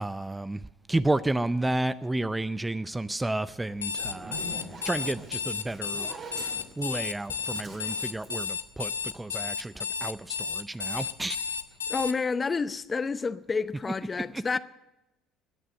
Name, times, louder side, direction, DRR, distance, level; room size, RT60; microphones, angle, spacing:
voice 1, 0.0-4.5 4.8-6.1 6.8-11.6 14.2-14.4, right 2 dB, 10° right, 0.5 m, -31 dB
Alarm, 3.7-12.1, left 6 dB, 85° left, 0.5 m, -33 dB
Zipper (clothing), 3.9-9.2, right 2 dB, 45° right, 3.5 m, -44 dB
voice 2, 11.9-14.6, left 4 dB, 25° left, 0.7 m, -29 dB
17.0 x 10.0 x 7.5 m
hypercardioid pair, 60°, 0 cm